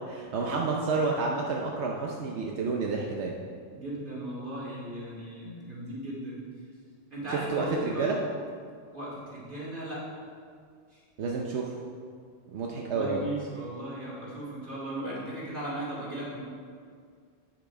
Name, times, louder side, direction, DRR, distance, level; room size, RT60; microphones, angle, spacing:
voice 1, 0.1-3.4 7.3-8.2 11.2-11.7 12.5-13.2, right 4 dB, 90° right, -1 dB, 1.0 m, -30 dB
voice 2, 3.7-6.4 7.1-8.1 8.9-10.0 12.9-16.4, right 1 dB, 50° right, -7 dB, 2.7 m, -37 dB
8.4 x 6.2 x 4.8 m, 2.1 s
omnidirectional pair, 1.1 m